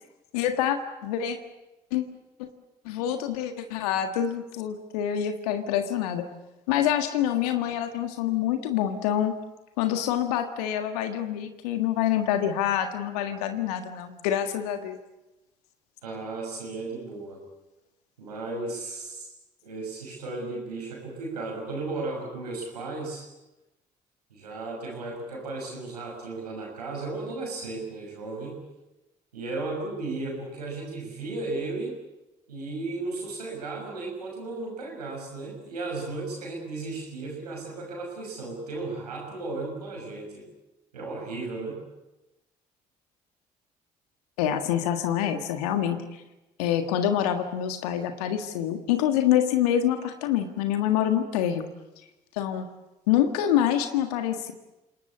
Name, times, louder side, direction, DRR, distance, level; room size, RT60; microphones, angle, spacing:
voice 1, 0.3-1.4 1.9-2.0 2.9-6.2 6.7-9.3 9.8-15.0 44.4-46.0 46.6-51.7 52.3-52.7 53.1-54.5, left 10 dB, 75° left, 7 dB, 1.7 m, -26 dB
voice 2, 16.0-17.4 18.2-19.3 19.6-23.2 24.3-28.6 29.3-32.0 32.5-40.5 40.9-41.8, right 3 dB, 85° right, 0 dB, 6.4 m, -35 dB
28.5 x 19.0 x 8.5 m, 1.0 s
figure-of-eight pair, 45°, 20 cm